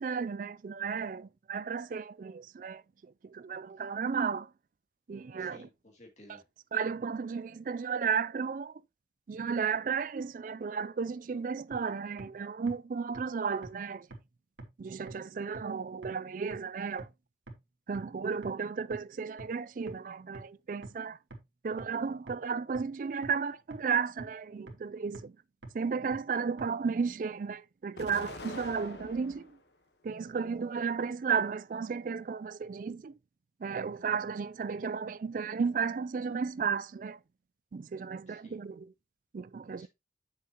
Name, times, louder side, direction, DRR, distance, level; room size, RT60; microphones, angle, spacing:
voice 1, 0.0-2.8 3.2-4.5 5.1-5.7 6.7-8.7 9.3-14.1 14.8-17.1 17.9-21.2 21.6-25.3 25.7-29.6 30.0-33.1 33.6-37.2 37.7-38.9 39.3-39.9, right 5 dB, 45° right, 0.3 m, -34 dB
voice 2, 5.4-6.4 38.3-38.6 39.7-39.9, left 1 dB, 40° left, 2.6 m, -56 dB
sound 1, 11.7-11.8 12.2-12.3 12.7-12.8 13.1-13.2 13.6-13.7 14.1-14.2 14.6-14.7 15.1-15.2 15.5-15.6 16.0-16.1 16.5-16.6 17.0-17.1 17.5-17.6 17.9-18.0 18.4-18.5 18.9-19.0 19.4-19.5 19.9-20.0 20.3-20.4 20.8-20.9 21.3-21.4 21.8-21.9 22.3-22.4 22.7-22.8 23.2-23.3 23.7-23.8 24.2-24.3 24.7-24.8 25.1-25.2 25.6-25.7 26.1-26.2 26.6-26.7, right 2 dB, 80° right, 2.1 m, -44 dB
Explosion, 28.0-29.6 30.1-31.0, left 2 dB, 65° left, 1.1 m, -46 dB
7.8 x 6.7 x 2.9 m
head